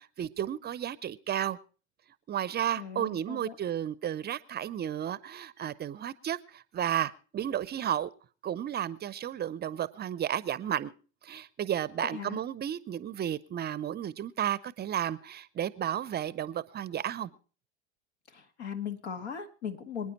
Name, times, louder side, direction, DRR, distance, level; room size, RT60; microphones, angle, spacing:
voice 1, 0.0-1.6 2.3-8.1 8.4-10.9 11.2-17.3, right 10 dB, 30° right, 19 dB, 0.6 m, -33 dB
voice 2, 2.8-3.6 12.0-12.4 18.3-20.1, left 7 dB, 70° left, 7 dB, 2.1 m, -38 dB
26.0 x 9.6 x 4.1 m, 0.38 s
figure-of-eight pair, 75°, 35 cm